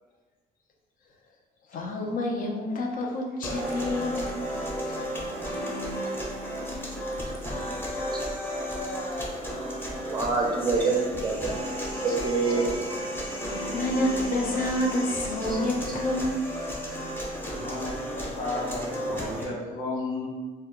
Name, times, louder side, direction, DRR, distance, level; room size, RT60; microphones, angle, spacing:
voice 1, 1.7-5.0 11.9-12.7 13.3-16.6, left 1 dB, 50° left, 2 dB, 0.5 m, -29 dB
sound 1, 3.4-19.4, equal, 10° left, 0.7 m, -33 dB
voice 2, 10.1-11.5 12.0-12.8 15.5-15.6, right 3 dB, 25° right, -1 dB, 0.5 m, -26 dB
voice 3, 17.5-20.3, left 2 dB, 80° left, -4 dB, 0.9 m, -33 dB
2.2 x 2.1 x 3.7 m, 1.3 s
cardioid pair, 110°, 18 cm